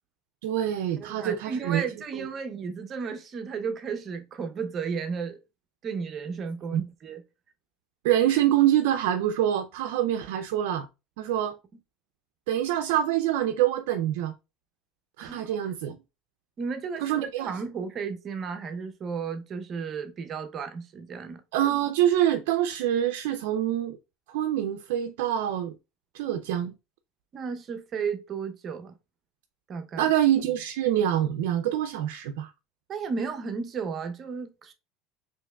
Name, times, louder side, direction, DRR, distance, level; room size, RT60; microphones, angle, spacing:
voice 1, 0.4-1.8 2.1-2.3 6.7-6.8 8.0-10.9 11.2-11.6 12.5-14.3 15.2-16.0 17.0-17.5 21.5-24.0 24.3-25.8 26.1-26.7 30.0-32.5, right 11 dB, 80° right, 0.3 m, -25 dB
voice 2, 1.0-5.4 5.8-7.2 15.2-15.6 16.6-21.4 27.3-28.9 29.7-30.1 32.9-34.7, right 5 dB, 35° right, 0.6 m, -34 dB
4.4 x 3.0 x 2.2 m
supercardioid pair, 120°, 0 cm